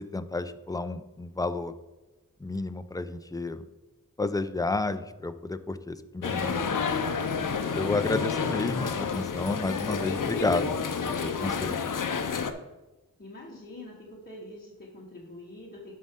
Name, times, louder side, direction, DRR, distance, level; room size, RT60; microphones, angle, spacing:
voice 1, 0.0-1.7 2.4-3.6 4.2-7.0 7.7-10.8 11.0-11.8, left 2 dB, 10° left, 10 dB, 0.5 m, -31 dB
sound 1, 6.2-12.5, left 5 dB, 65° left, 0.7 m, -30 dB
voice 2, 13.2-15.9, left 1 dB, 25° left, -5 dB, 1.4 m, -45 dB
11.5 x 5.5 x 3.7 m, 1.1 s
wide cardioid pair, 80°, 34 cm